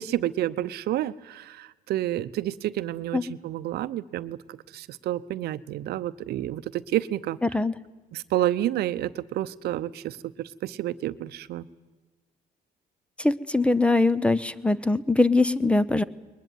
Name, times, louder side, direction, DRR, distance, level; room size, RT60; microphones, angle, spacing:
voice 1, 0.0-7.4 8.1-11.7, right 13 dB, 70° right, 15 dB, 0.8 m, -30 dB
voice 2, 13.2-16.0, left 2 dB, 5° left, 17 dB, 0.7 m, -22 dB
21.5 x 20.0 x 9.3 m, 1.3 s
cardioid pair, 110°, 17 cm